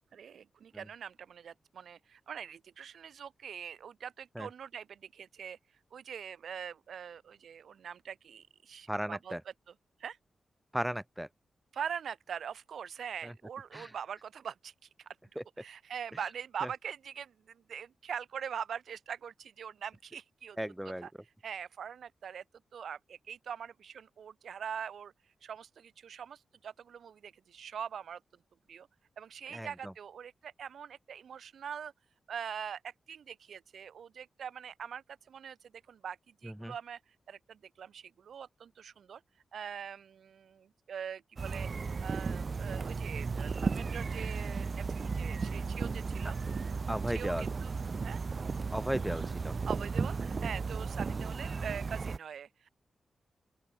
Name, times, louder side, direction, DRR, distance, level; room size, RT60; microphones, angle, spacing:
voice 1, 0.1-5.6 5.9-9.3 10.0-10.2 11.7-14.7 15.0-20.6 21.0-21.1 21.4-22.4 22.7-25.1 25.4-28.2 28.7-28.9 29.2-31.9 32.3-35.6 35.9-37.0 37.3-39.2 39.5-41.7 42.0-46.4 47.1-47.7 48.0-48.2 49.6-52.7, right 8 dB, 80° right, 1.2 m, -43 dB
voice 2, 8.9-9.4 10.7-11.3 13.2-13.3 13.7-13.9 15.4-15.5 16.6-16.7 20.6-21.1 29.5-29.9 36.4-36.7 46.9-47.5 48.7-49.6, equal, 5° right, 1.0 m, -36 dB
sound 1, 41.4-52.2, right 4 dB, 40° right, 0.9 m, -35 dB
open air
wide cardioid pair, 150°, 0 cm